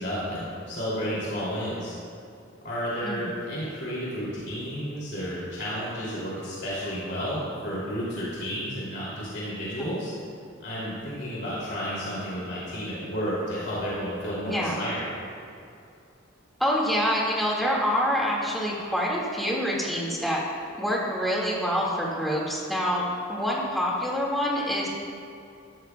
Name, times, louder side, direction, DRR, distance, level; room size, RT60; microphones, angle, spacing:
voice 1, 0.0-1.9 2.6-10.1 10.6-15.1, equal, 55° left, -8 dB, 2.8 m, -32 dB
voice 2, 14.5-14.8 16.6-20.4 20.8-24.9, equal, ahead, -5 dB, 2.0 m, -26 dB
14.0 x 13.5 x 2.3 m, 2.5 s
head